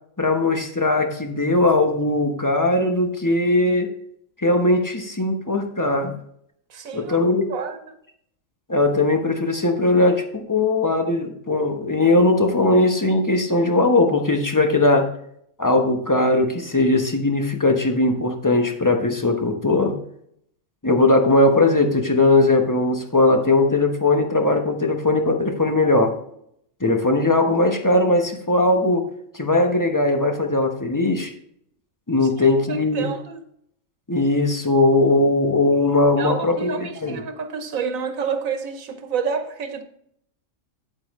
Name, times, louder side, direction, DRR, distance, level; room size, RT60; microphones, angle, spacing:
voice 1, 0.2-3.9 4.4-6.2 6.9-7.5 8.7-15.1 15.6-19.9 20.8-26.1 26.8-29.1 29.3-31.3 32.1-33.1 34.1-37.2, left 2 dB, 15° left, 1.0 m, -19 dB
voice 2, 6.7-7.2 7.5-8.0 32.7-33.4 36.2-39.8, right 6 dB, 90° right, 1.4 m, -29 dB
8.8 x 8.4 x 3.2 m
omnidirectional pair, 1.4 m